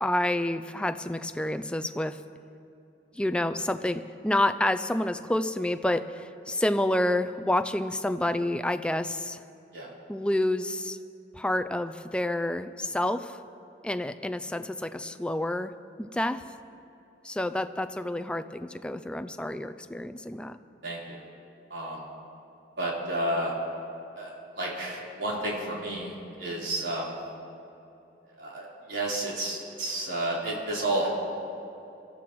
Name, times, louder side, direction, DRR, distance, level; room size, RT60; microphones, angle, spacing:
voice 1, 0.0-2.2 3.1-9.4 10.1-11.0 11.3-13.4 13.8-15.7 16.0-16.4 17.2-20.6, left 1 dB, 5° left, 9 dB, 0.3 m, -29 dB
voice 2, 20.8-21.2 21.7-22.0 22.8-23.5 24.2-27.2 28.4-31.1, right 1 dB, 70° right, -5 dB, 3.9 m, -31 dB
24.0 x 13.5 x 3.1 m, 2.8 s
head